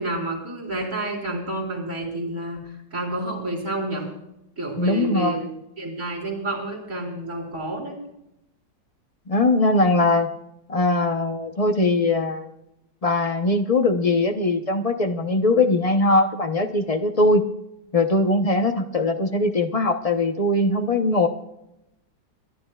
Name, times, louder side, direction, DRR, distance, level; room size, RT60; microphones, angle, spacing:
voice 1, 0.0-2.6 2.9-4.1 4.6-5.4 5.8-8.0, right 1 dB, 40° right, -2 dB, 4.6 m, -29 dB
voice 2, 4.8-5.3 9.3-10.3 10.7-12.5 13.0-17.4 17.9-21.3, left 2 dB, 35° left, 6 dB, 0.6 m, -21 dB
29.5 x 11.5 x 2.4 m, 0.86 s
omnidirectional pair, 2.0 m